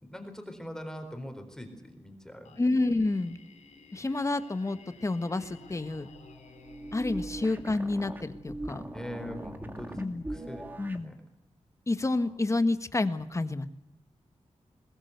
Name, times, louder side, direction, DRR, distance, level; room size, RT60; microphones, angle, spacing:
voice 1, 0.0-2.6 8.9-10.0 10.3-10.6 11.0-11.1, equal, 5° left, 6 dB, 4.2 m, -42 dB
Singing, 2.4-8.4, left 5 dB, 85° left, 4.2 m, -56 dB
voice 2, 2.6-3.4 3.9-6.1 6.9-8.8 10.0-10.2 10.8-11.1 11.9-13.7, left 2 dB, 25° left, 10 dB, 1.6 m, -29 dB
sound 1, 5.4-11.1, right 1 dB, 15° right, 2.4 m, -41 dB
21.5 x 21.0 x 8.2 m, 0.82 s
wide cardioid pair, 125°, 12 cm